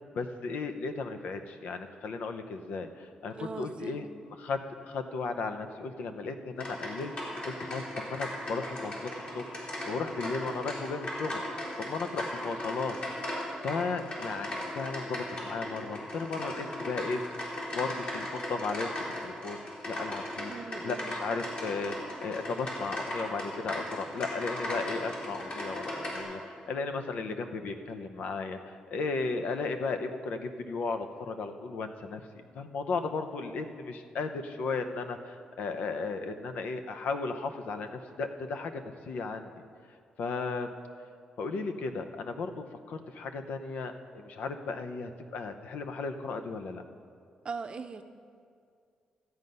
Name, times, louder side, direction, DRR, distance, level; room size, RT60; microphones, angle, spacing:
voice 1, 0.1-4.1 4.4-4.6 4.8-7.1 7.4-13.0 13.6-17.2 17.7-18.9 19.2-20.5 20.8-32.2 32.5-39.6 40.2-40.7 41.4-46.8, left 4 dB, 80° left, 8 dB, 0.8 m, -35 dB
voice 2, 3.3-4.0 20.5-21.1 47.4-48.0, right 5 dB, 40° right, 8 dB, 0.6 m, -40 dB
sound 1, 6.6-26.2, left 1 dB, 55° left, 3.5 m, -37 dB
13.5 x 8.0 x 5.5 m, 2.2 s
cardioid pair, 100°, 2 cm